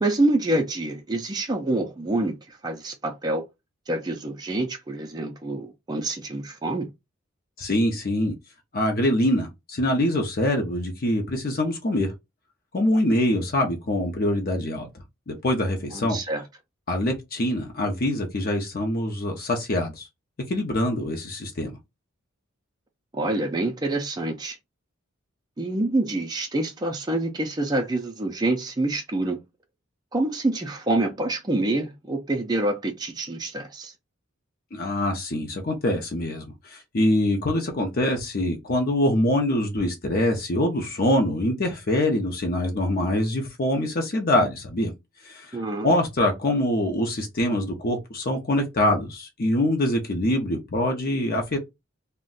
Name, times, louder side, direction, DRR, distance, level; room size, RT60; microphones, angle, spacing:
voice 1, 0.0-3.5 3.9-6.9 15.9-16.4 23.1-24.6 25.6-29.4 30.1-33.9 45.5-45.9, right 2 dB, 20° right, 0.4 m, -26 dB
voice 2, 7.6-8.3 8.7-12.1 12.7-14.9 15.3-16.2 16.9-20.1 20.5-21.7 34.7-44.9 45.2-51.6, left 1 dB, 45° left, 0.6 m, -24 dB
2.5 x 2.1 x 3.8 m
head